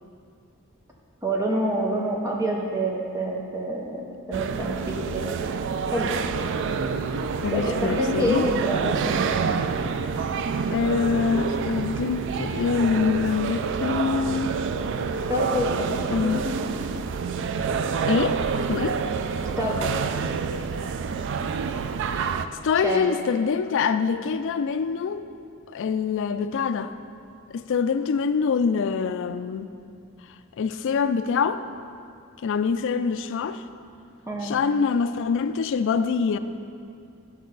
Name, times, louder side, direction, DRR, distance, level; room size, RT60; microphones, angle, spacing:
voice 1, 1.2-5.3 5.9-6.3 7.5-9.4 15.3-16.7 19.6-20.0 22.8-23.2 34.3-34.6, equal, 15° right, -1 dB, 0.7 m, -27 dB
sound 1, 4.3-22.5, right 5 dB, 60° right, 0.3 m, -27 dB
voice 2, 7.4-8.5 10.7-14.5 16.1-16.5 18.1-19.0 22.6-25.3 25.7-26.9 27.5-29.7 30.6-31.6 32.4-33.6 34.4-36.4, left 5 dB, 60° left, 11 dB, 0.4 m, -25 dB
12.0 x 5.4 x 4.0 m, 2.4 s
head